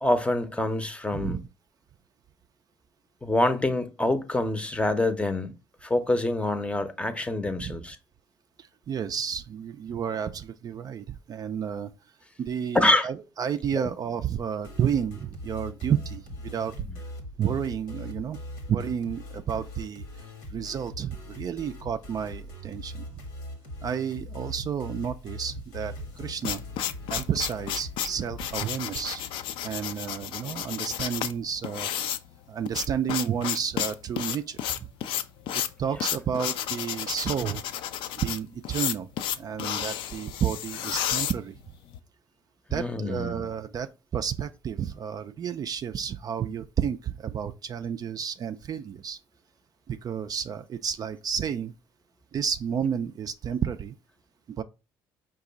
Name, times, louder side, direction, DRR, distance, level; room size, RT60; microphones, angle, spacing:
voice 1, 0.0-1.4 3.2-5.5 5.8-8.0 12.7-13.1 13.7-13.9 42.7-43.4, left 2 dB, 10° left, 0.6 m, -26 dB
voice 2, 8.6-11.9 12.4-16.9 17.4-18.4 18.7-23.2 23.8-26.6 27.1-29.2 29.6-31.9 32.5-34.6 35.5-37.6 38.2-39.1 39.4-41.6 42.7-49.2 49.9-51.7 52.3-53.9 54.5-54.6, right 8 dB, 40° right, 0.3 m, -31 dB
sound 1, 14.6-28.7, left 1 dB, 85° left, 1.1 m, -41 dB
sound 2, 26.1-42.0, left 10 dB, 65° left, 0.4 m, -32 dB
4.8 x 2.3 x 3.9 m
hypercardioid pair, 65°, 9 cm